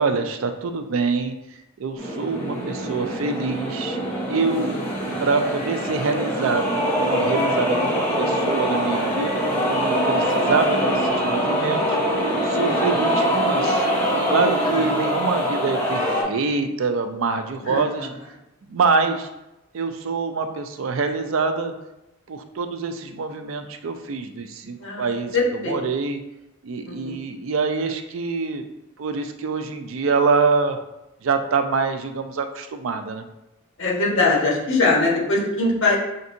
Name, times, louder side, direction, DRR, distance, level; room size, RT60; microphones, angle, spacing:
voice 1, 0.0-4.0 4.3-4.8 5.2-6.7 7.0-9.4 9.8-12.0 12.4-13.9 14.3-18.1 18.7-19.3 19.7-21.7 22.3-26.2 26.6-28.6 29.0-30.8 31.2-33.3, right 4 dB, 70° right, 7 dB, 0.4 m, -25 dB
sound 1, 2.0-16.2, equal, 10° left, 1.0 m, -23 dB
voice 2, 4.3-4.7 12.5-12.6 14.3-14.9 17.6-18.1 24.8-25.1 25.3-25.7 26.8-27.2 33.8-36.0, left 2 dB, 65° left, -4 dB, 1.3 m, -22 dB
5.8 x 2.6 x 2.6 m, 0.92 s
head